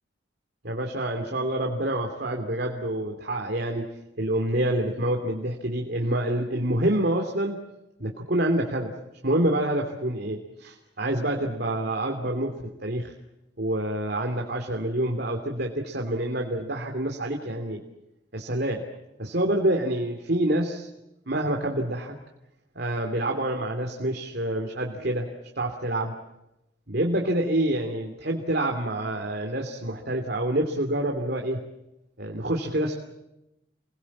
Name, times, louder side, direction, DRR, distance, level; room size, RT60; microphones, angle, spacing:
voice 1, 0.6-3.9 4.2-7.6 8.0-8.9 9.2-12.5 12.8-13.1 13.6-17.8 18.3-18.8 19.2-20.9 21.3-22.2 22.7-25.3 25.6-26.1 26.9-31.6 32.2-32.9, right 1 dB, 55° right, 2 dB, 2.9 m, -27 dB
29.0 x 21.0 x 7.4 m, 0.90 s
head